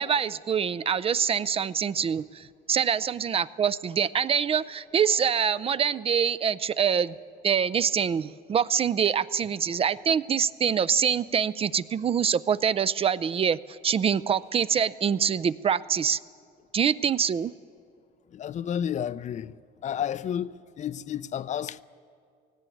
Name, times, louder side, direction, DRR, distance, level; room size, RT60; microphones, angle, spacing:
voice 1, 0.0-7.1 7.4-16.2 16.7-17.5, right 7 dB, 35° right, 0.4 m, -25 dB
voice 2, 18.3-19.5 19.8-21.8, left 9 dB, 45° left, 0.5 m, -31 dB
17.0 x 17.0 x 9.2 m
cardioid pair, 110°, 17 cm